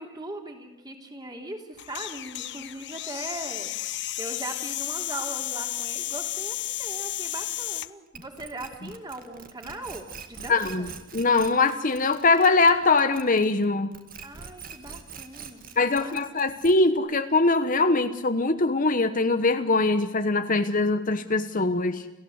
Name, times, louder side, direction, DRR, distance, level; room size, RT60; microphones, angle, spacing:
voice 1, 0.0-10.9 14.2-16.8, right 2 dB, 20° right, 3 dB, 3.3 m, -40 dB
sound 1, 1.8-7.9, left 15 dB, 60° left, 0.7 m, -33 dB
sound 2, 8.1-13.6 13.9-17.0, right 6 dB, 45° right, 2.1 m, -43 dB
voice 2, 10.5-13.9 15.8-22.0, left 3 dB, 40° left, 9 dB, 1.1 m, -22 dB
29.5 x 15.5 x 8.0 m, 1.0 s
head